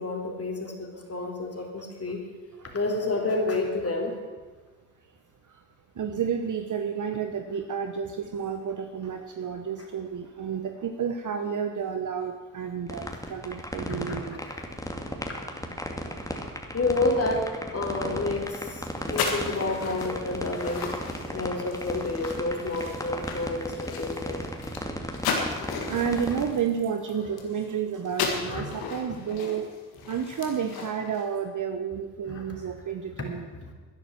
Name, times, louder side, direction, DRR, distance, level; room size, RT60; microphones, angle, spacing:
voice 1, 0.0-2.2 2.6-4.2 13.9-14.0 14.5-14.6 16.7-17.5 17.7-21.0 21.3-24.4 28.5-28.7 32.3-32.5 33.6-33.7, left 2 dB, 40° left, 1 dB, 3.7 m, -29 dB
voice 2, 6.0-14.4 25.9-29.7 30.1-33.5, right 7 dB, 55° right, 6 dB, 1.1 m, -31 dB
sound 1, 12.9-26.5, left 1 dB, 10° left, 2.6 m, -34 dB
sound 2, 18.4-27.7 28.0-31.2, left 5 dB, 85° left, 1.9 m, -35 dB
12.0 x 10.5 x 7.5 m, 1.4 s
hypercardioid pair, 45°, 36 cm